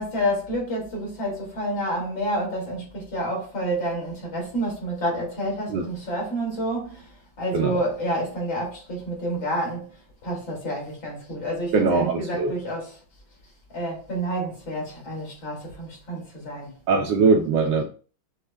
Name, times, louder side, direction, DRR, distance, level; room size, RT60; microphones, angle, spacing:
voice 1, 0.0-7.1 7.4-9.9 10.2-13.0 13.7-16.7, right 1 dB, 65° left, 2.6 m, -29 dB
voice 2, 11.7-12.5 16.9-17.8, right 4 dB, 70° right, 1.1 m, -21 dB
6.3 x 2.2 x 3.3 m
omnidirectional pair, 2.3 m